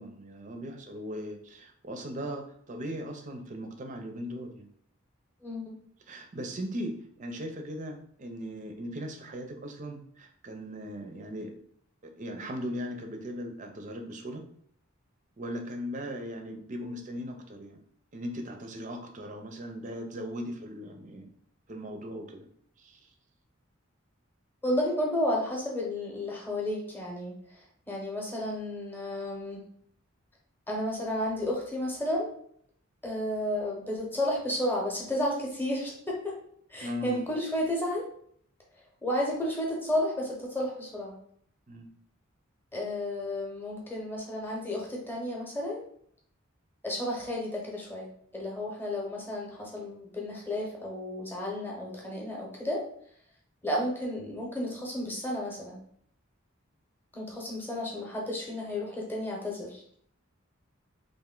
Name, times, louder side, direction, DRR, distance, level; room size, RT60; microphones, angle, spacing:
voice 1, 0.0-4.7 6.1-11.5 12.0-14.4 15.4-17.8 18.1-21.3 21.7-22.5 22.8-23.0 36.8-37.3 41.7-41.9, equal, 35° right, 4 dB, 0.5 m, -38 dB
voice 2, 5.4-5.8 24.6-29.6 30.7-32.3 33.0-36.3 36.7-38.1 39.0-41.2 42.7-45.8 46.8-52.8 53.6-55.8 57.1-59.8, left 1 dB, 10° left, -2 dB, 0.8 m, -32 dB
3.2 x 2.6 x 3.7 m, 0.63 s
head